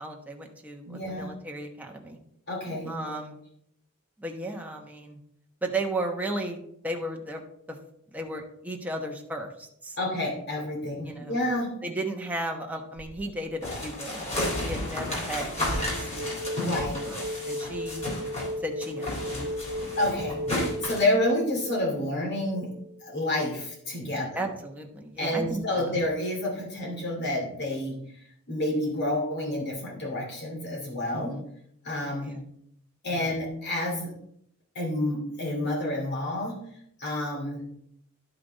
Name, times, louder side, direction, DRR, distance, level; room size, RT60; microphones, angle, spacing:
voice 1, 0.0-2.2 2.9-3.4 4.2-5.2 5.6-7.4 8.1-10.0 11.1-11.4 11.8-18.0 18.6-20.0 24.3-26.0 31.1-31.5 32.2-32.5 33.0-33.3, right 1 dB, 5° right, 1 dB, 1.0 m, -35 dB
voice 2, 0.8-1.3 2.5-2.9 10.0-11.7 16.6-17.0 20.0-22.7 23.0-24.4 25.2-28.0 28.5-31.3 31.8-32.3 33.0-34.1 34.7-36.6 37.0-37.6, left 1 dB, 50° left, -1 dB, 2.5 m, -29 dB
sound 1, 13.0-13.7 15.4-23.1, equal, 45° right, 0.4 m, -37 dB
sound 2, 13.6-18.5 18.8-21.1, left 1 dB, 30° left, 3.4 m, -32 dB
11.5 x 5.9 x 4.0 m, 0.70 s
head